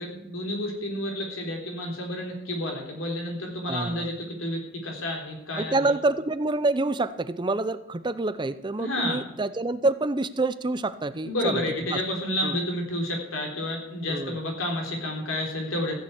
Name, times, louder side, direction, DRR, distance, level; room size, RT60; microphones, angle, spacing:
voice 1, 0.0-5.9 8.8-9.2 11.2-15.9, left 1 dB, 90° left, 1 dB, 3.9 m, -30 dB
voice 2, 3.7-4.1 5.5-11.6 11.9-12.0 12.4-12.6 14.1-14.4, right 2 dB, 20° right, 13 dB, 0.5 m, -27 dB
15.5 x 6.9 x 8.1 m, 0.93 s
head